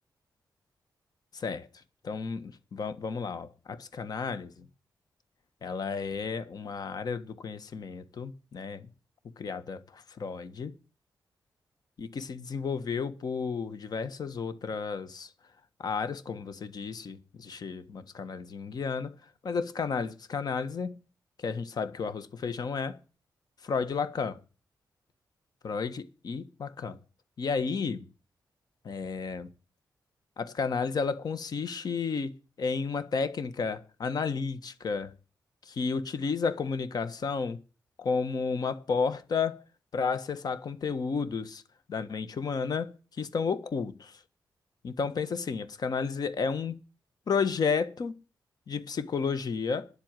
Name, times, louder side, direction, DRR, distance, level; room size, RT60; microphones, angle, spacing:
voice 1, 1.3-1.7 2.0-4.7 5.6-8.9 9.4-10.7 12.0-15.3 15.8-19.2 19.4-20.9 21.4-23.0 23.7-24.4 25.6-27.0 27.4-28.0 28.8-29.5 30.4-35.1 35.7-37.6 38.0-39.6 39.9-41.6 41.9-44.2 44.8-46.7 47.3-48.1 48.7-49.9, left 5 dB, 60° left, 1.4 m, -32 dB
10.5 x 7.9 x 9.0 m
wide cardioid pair, 120°, 8 cm